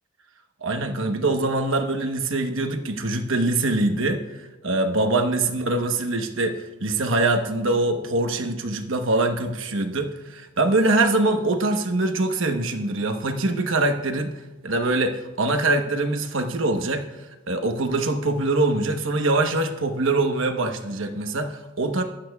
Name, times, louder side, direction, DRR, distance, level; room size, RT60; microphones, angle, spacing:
voice 1, 0.6-14.3 14.6-17.0 17.5-22.0, right 2 dB, 80° right, 5 dB, 1.0 m, -23 dB
14.5 x 11.0 x 2.3 m, 1.1 s
head